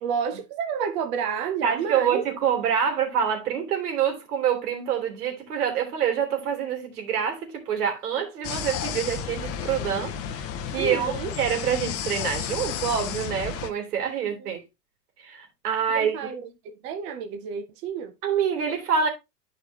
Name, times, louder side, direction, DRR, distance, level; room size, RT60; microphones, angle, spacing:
voice 1, 0.0-2.3 10.8-11.3 14.2-14.5 15.9-18.1, right 6 dB, 15° right, 0.3 m, -30 dB
voice 2, 1.6-14.6 15.2-16.3 18.2-19.1, right 8 dB, 65° right, 3.2 m, -26 dB
sound 1, 8.4-13.7, left 8 dB, 30° left, 0.9 m, -32 dB
10.5 x 5.1 x 2.8 m
hypercardioid pair, 115°, 49 cm